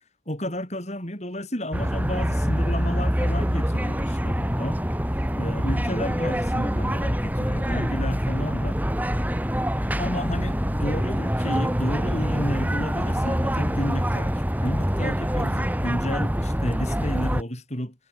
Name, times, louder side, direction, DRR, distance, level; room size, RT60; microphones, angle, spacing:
voice 1, 0.3-4.8 5.3-8.8 10.0-17.9, equal, 35° left, 7.3 m, -31 dB
sound 1, 1.7-17.4, equal, 10° right, 4.1 m, -25 dB
head